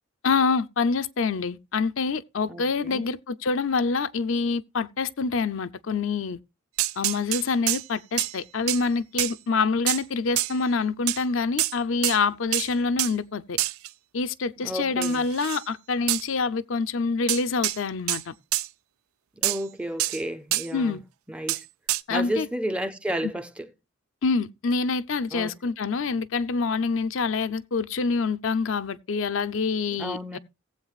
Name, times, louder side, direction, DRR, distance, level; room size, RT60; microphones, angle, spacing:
voice 1, 0.2-6.4 7.0-13.6 14.1-18.3 20.7-21.0 22.1-22.5 23.2-23.3 24.2-30.4, left 4 dB, 65° left, 0.5 m, -26 dB
voice 2, 2.5-3.0 14.6-15.2 19.4-21.0 21.3-21.7 22.1-23.7 25.3-25.5 29.9-30.4, right 1 dB, 5° right, 0.6 m, -32 dB
sound 1, 6.8-7.8 8.2-8.3 8.7-8.8 9.2-9.3 9.9-10.0 10.4-10.5 11.1-11.2 11.6-11.7 12.0-12.2 12.5-12.7 13.0-13.1 13.6-13.9 15.0-15.6 16.1-16.2 17.3-17.8 18.1-18.2 18.5-18.7 19.4-19.6 20.0-20.2 20.5-20.7 21.5-21.6 21.9-22.0, right 16 dB, 85° right, 0.4 m, -26 dB
18.0 x 7.9 x 2.4 m
head